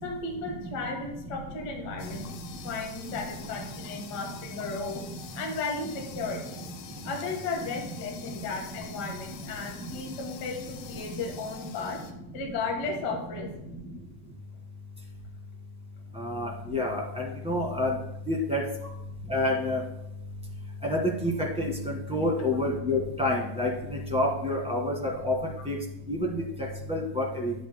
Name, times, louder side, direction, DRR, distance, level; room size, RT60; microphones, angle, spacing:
voice 1, 0.0-2.3 2.6-5.1 5.3-6.6 7.0-12.0 12.3-13.5, left 4 dB, 45° left, 1 dB, 1.6 m, -34 dB
sound 1, 2.0-12.1, left 7 dB, 85° left, 2.4 m, -47 dB
voice 2, 16.2-17.9 18.3-18.6 19.3-19.8 20.8-21.3 21.6-25.3 25.6-25.8 26.1-26.3 26.9-27.5, left 1 dB, 5° right, -2 dB, 0.4 m, -28 dB
11.5 x 8.8 x 2.2 m, 0.83 s
omnidirectional pair, 3.6 m